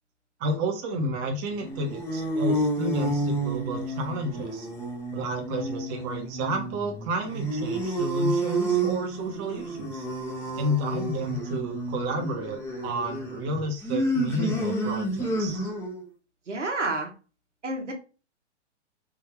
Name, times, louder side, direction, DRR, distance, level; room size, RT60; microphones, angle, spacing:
voice 1, 0.4-4.7 5.1-10.1 10.6-15.7, right 1 dB, 30° right, 3 dB, 1.0 m, -31 dB
sound 1, 1.5-16.0, right 2 dB, 5° left, 0.8 m, -30 dB
voice 2, 16.5-17.1 17.6-17.9, right 2 dB, 90° right, 2 dB, 1.5 m, -29 dB
3.7 x 2.7 x 4.5 m, 0.33 s
hypercardioid pair, 125°, 35 cm